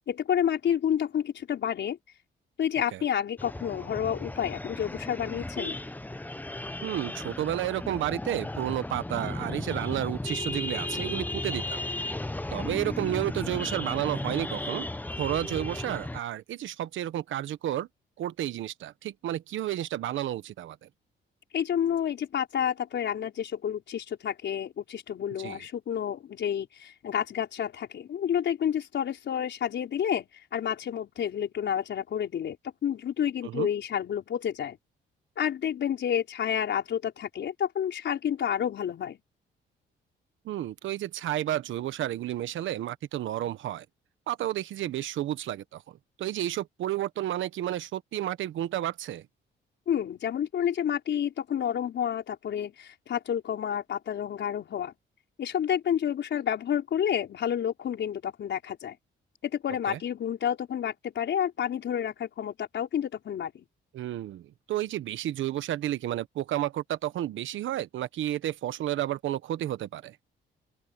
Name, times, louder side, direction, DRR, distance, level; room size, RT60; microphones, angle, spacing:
voice 1, 0.1-2.0 2.6-5.8 21.5-32.6 32.8-34.8 35.4-39.2 49.9-54.9 55.4-59.0 59.4-63.7, left 9 dB, 65° left, 4.9 m, -29 dB
sound 1, 3.4-16.2, left 2 dB, 10° left, 1.0 m, -35 dB
voice 2, 6.8-11.9 12.5-14.9 15.2-17.9 18.2-20.9 25.4-25.6 33.4-33.7 40.4-43.8 44.3-45.8 46.2-49.2 59.9-60.0 63.9-70.2, right 13 dB, 75° right, 1.3 m, -31 dB
open air
cardioid pair, 90°, 20 cm